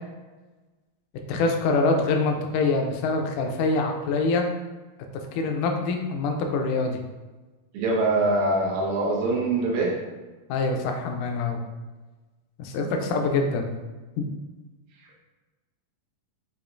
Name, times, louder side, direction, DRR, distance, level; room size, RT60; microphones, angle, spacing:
voice 1, 1.3-4.5 5.3-7.0 10.5-11.6 12.6-13.7 14.2-14.3, left 3 dB, 80° left, 3 dB, 1.9 m, -25 dB
voice 2, 7.7-10.0 13.0-13.2, right 2 dB, 75° right, -2 dB, 1.9 m, -24 dB
6.7 x 2.8 x 2.6 m, 1.2 s
omnidirectional pair, 3.9 m